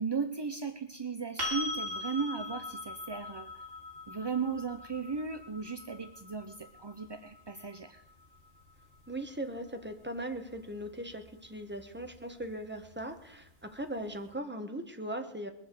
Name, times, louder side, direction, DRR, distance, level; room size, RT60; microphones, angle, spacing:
voice 1, 0.0-3.7 4.1-8.0, right 5 dB, 35° right, 9 dB, 0.4 m, -36 dB
sound 1, 1.4-9.2 12.0-12.1, left 2 dB, 70° right, 3.7 m, -41 dB
voice 2, 9.1-15.5, right 1 dB, 10° right, 6 dB, 1.2 m, -39 dB
21.0 x 8.0 x 7.6 m, 0.80 s
omnidirectional pair, 1.3 m